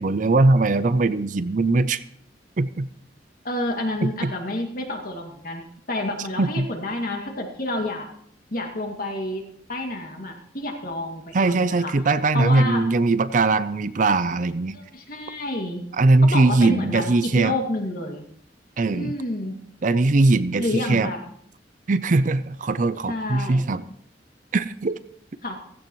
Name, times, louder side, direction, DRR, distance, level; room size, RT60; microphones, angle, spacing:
voice 1, 0.0-2.0 2.6-2.9 4.0-4.3 6.4-6.7 11.3-14.8 16.0-17.6 18.8-19.1 19.8-21.1 21.9-23.8 24.5-25.0, right 3 dB, 45° right, 14 dB, 0.5 m, -20 dB
voice 2, 3.4-5.6 5.9-8.1 8.5-9.4 9.7-11.9 12.3-12.9 14.7-15.8 16.2-18.2 18.9-19.6 20.5-21.2 23.1-23.6 25.4-25.6, left 1 dB, 50° left, 2 dB, 2.3 m, -29 dB
15.5 x 15.0 x 3.1 m, 0.69 s
head